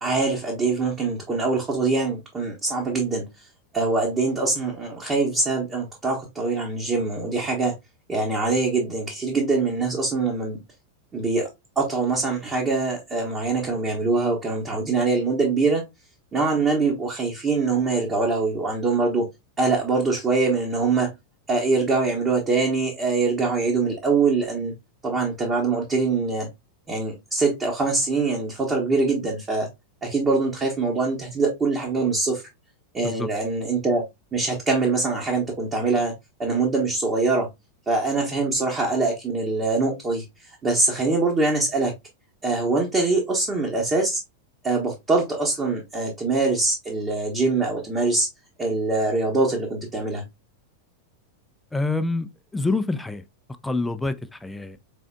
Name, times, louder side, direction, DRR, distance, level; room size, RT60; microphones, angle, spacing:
voice 1, 0.0-3.2 3.7-7.7 8.1-10.6 11.1-11.5 11.8-15.8 16.3-19.3 19.6-21.1 21.5-24.7 25.0-26.5 26.9-29.7 30.0-32.4 32.9-34.0 34.3-36.1 36.4-37.5 37.9-40.2 40.6-41.9 42.4-44.2 44.6-48.3 48.6-50.2, right 3 dB, 20° right, 0.9 m, -23 dB
voice 2, 51.7-53.2 53.6-54.8, left 3 dB, 5° left, 0.4 m, -27 dB
4.2 x 3.6 x 2.2 m
figure-of-eight pair, 90°, 0 cm